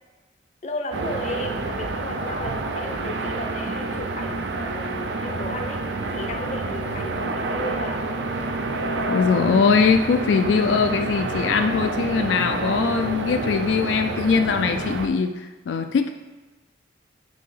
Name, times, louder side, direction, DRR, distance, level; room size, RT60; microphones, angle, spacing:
voice 1, 0.6-5.8 6.1-8.0, left 1 dB, 40° left, 4 dB, 0.6 m, -34 dB
sound 1, 0.9-15.1, right 2 dB, 80° right, 0.5 m, -28 dB
voice 2, 9.1-16.1, left 5 dB, 85° left, 6 dB, 0.3 m, -21 dB
6.1 x 2.8 x 5.5 m, 1.2 s
head